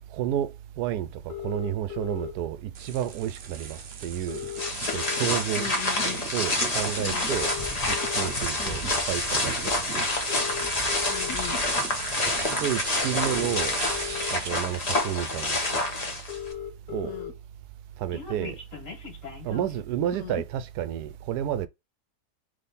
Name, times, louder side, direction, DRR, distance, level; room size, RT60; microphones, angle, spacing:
voice 1, 0.0-4.4 4.9-5.7 6.3-7.5 7.9-9.8 12.6-13.8 14.3-15.8 16.9-17.1 18.0-18.6 19.4-21.7, right 11 dB, 75° right, 1.1 m, -31 dB
sound 1, 1.3-2.3 3.5-3.6 3.8-3.9 4.1-5.6 6.1-6.3 7.1-8.3 9.0-9.2 10.1-11.3 12.5-12.6 13.1-14.3 15.0-15.1 15.4-15.5 15.7-15.8 16.0-17.3 17.6-19.8, left 9 dB, 50° left, 2.2 m, -37 dB
sound 2, 2.7-14.8, right 6 dB, 50° right, 0.9 m, -38 dB
sound 3, 4.6-16.5, left 2 dB, 25° left, 1.0 m, -28 dB
voice 2, 5.6-6.2 7.0-7.3 8.6-8.9 11.1-11.6 17.0-17.3 20.1-20.4, left 7 dB, 75° left, 1.4 m, -37 dB
3.5 x 3.4 x 4.1 m
omnidirectional pair, 1.8 m